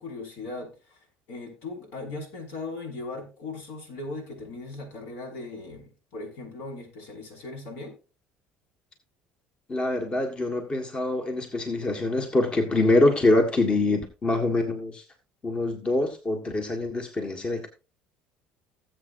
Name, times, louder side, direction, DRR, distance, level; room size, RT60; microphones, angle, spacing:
voice 1, 0.0-7.9, left 3 dB, 75° left, 2 dB, 5.6 m, -38 dB
voice 2, 9.7-15.0 15.4-17.7, left 2 dB, 25° left, 4 dB, 1.7 m, -24 dB
18.5 x 7.8 x 2.6 m, 0.32 s
supercardioid pair, 105°, 4 cm